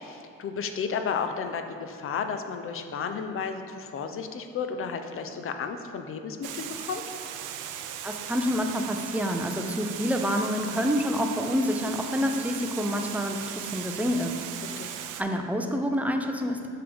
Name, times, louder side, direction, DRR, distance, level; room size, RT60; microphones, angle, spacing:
voice 1, 0.0-7.0 14.6-15.0, left 6 dB, 40° left, 7 dB, 0.6 m, -33 dB
Water, 6.4-15.2, right 9 dB, 70° right, 0.5 m, -38 dB
voice 2, 8.0-14.4 15.2-16.7, equal, 5° right, 4 dB, 0.5 m, -27 dB
6.6 x 3.7 x 5.2 m, 2.7 s
cardioid pair, 95°, 32 cm